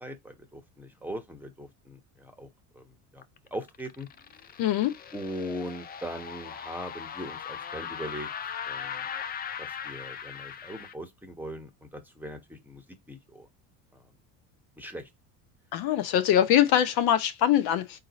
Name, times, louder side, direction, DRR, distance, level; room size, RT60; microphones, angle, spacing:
voice 1, 0.0-2.5 2.7-2.8 3.1-3.2 3.5-4.1 5.1-8.3 8.7-9.0 9.6-13.5 13.9-14.0 14.8-15.1, equal, 5° right, 1.0 m, -40 dB
sound 1, 3.2-10.9, left 8 dB, 25° left, 0.4 m, -39 dB
voice 2, 4.6-4.9 15.7-18.0, left 11 dB, 55° left, 0.7 m, -23 dB
4.1 x 2.6 x 3.9 m
hypercardioid pair, 85°, 45 cm